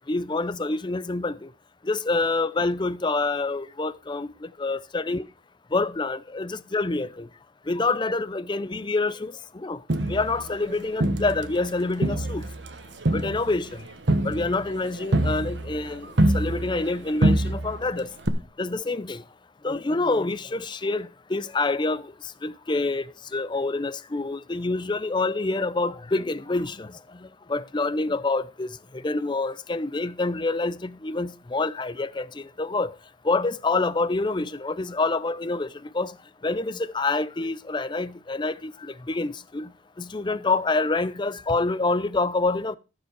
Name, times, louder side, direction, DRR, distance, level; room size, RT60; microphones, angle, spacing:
voice 1, 0.1-1.5 1.8-5.3 5.7-7.3 7.7-9.8 10.1-12.5 13.1-13.8 14.2-16.1 16.3-18.1 18.6-19.2 19.6-22.1 22.4-23.0 23.3-26.9 27.5-28.7 29.0-32.9 33.2-35.7 35.9-36.1 36.4-39.7 40.0-42.8, left 3 dB, 25° left, 0.6 m, -27 dB
Crowd, 9.9-11.7 12.0-16.9 17.2-17.9 18.3-18.4, right 1 dB, 70° right, 1.2 m, -25 dB
13.0 x 7.0 x 4.7 m
head